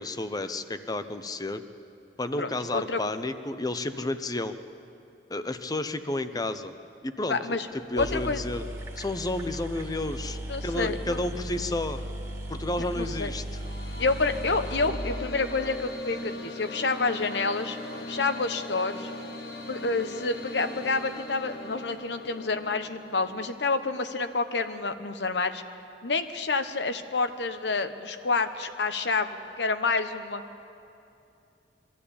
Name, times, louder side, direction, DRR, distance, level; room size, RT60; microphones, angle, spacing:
voice 1, 0.0-1.6 2.2-4.5 5.3-6.7 7.0-7.4 7.7-8.6 9.0-12.1 12.5-13.6, left 2 dB, 20° left, 10 dB, 0.7 m, -31 dB
voice 2, 2.4-3.0 7.3-7.7 8.0-8.4 10.5-11.2 12.9-13.3 14.0-17.8 18.1-19.1 19.7-25.6 26.0-30.4, left 3 dB, 80° left, 9 dB, 1.0 m, -28 dB
sound 1, 7.7-7.8 8.0-15.8, right 1 dB, 15° right, 1.9 m, -37 dB
sound 2, 13.2-23.5, left 1 dB, 65° left, 1.7 m, -40 dB
24.0 x 12.5 x 8.5 m, 2.7 s
head